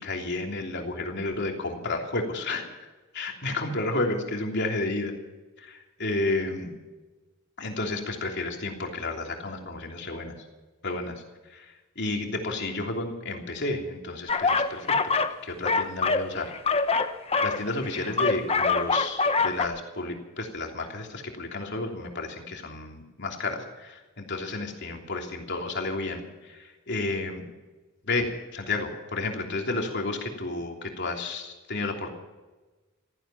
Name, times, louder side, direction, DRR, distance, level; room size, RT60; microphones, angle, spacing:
voice 1, 0.0-2.7 3.1-5.1 5.6-6.7 7.6-10.3 10.8-11.2 11.5-15.0 15.4-16.5 17.4-27.4 28.0-32.1, left 2 dB, 55° left, 2 dB, 3.1 m, -31 dB
sound 1, 14.3-15.4 15.6-19.7, left 4 dB, 30° left, 0.9 m, -24 dB
16.0 x 15.0 x 5.8 m, 1.2 s
head